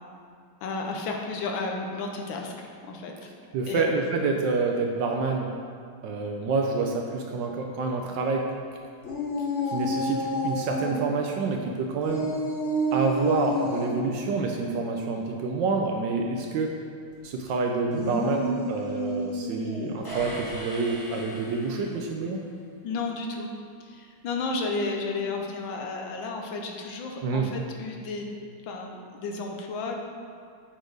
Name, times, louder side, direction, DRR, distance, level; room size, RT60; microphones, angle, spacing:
voice 1, 0.6-3.3 3.7-3.9 22.8-23.5 23.8-28.3 28.6-30.0, left 3 dB, 70° left, 1 dB, 1.4 m, -32 dB
voice 2, 3.5-5.5 6.0-8.5 9.7-12.3 12.9-16.8 17.2-22.4 27.2-27.5, right 4 dB, 75° right, 2 dB, 1.1 m, -28 dB
sound 1, 9.0-11.0 12.0-14.0 17.8-20.0, equal, 40° left, 1.1 m, -29 dB
sound 2, 20.0-22.3, equal, 15° left, 0.7 m, -39 dB
7.9 x 4.3 x 4.7 m, 2.3 s
omnidirectional pair, 2.3 m